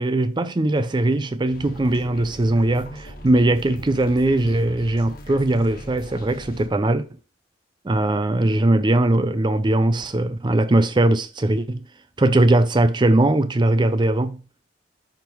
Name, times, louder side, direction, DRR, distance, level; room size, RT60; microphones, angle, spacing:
voice 1, 0.0-7.1 7.8-11.9 12.2-14.4, right 2 dB, 25° right, 0.4 m, -20 dB
sound 1, 1.5-6.7, equal, 50° left, 1.5 m, -40 dB
10.5 x 3.5 x 4.5 m
head